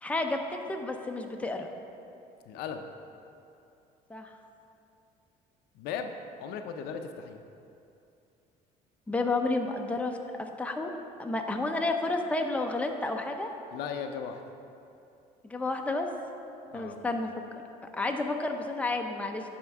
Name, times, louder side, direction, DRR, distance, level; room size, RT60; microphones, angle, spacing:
voice 1, 0.0-0.4 0.7-1.7 4.1-4.3 9.1-10.9 11.2-13.5 15.4-16.1 16.7-17.3 17.9-19.5, left 2 dB, 10° left, 3 dB, 0.6 m, -31 dB
voice 2, 2.5-2.8 5.7-6.1 6.4-7.4 13.7-14.4 16.7-17.0, left 7 dB, 80° left, 6 dB, 0.5 m, -37 dB
10.5 x 4.4 x 3.5 m, 2.7 s
cardioid pair, 95°, 16 cm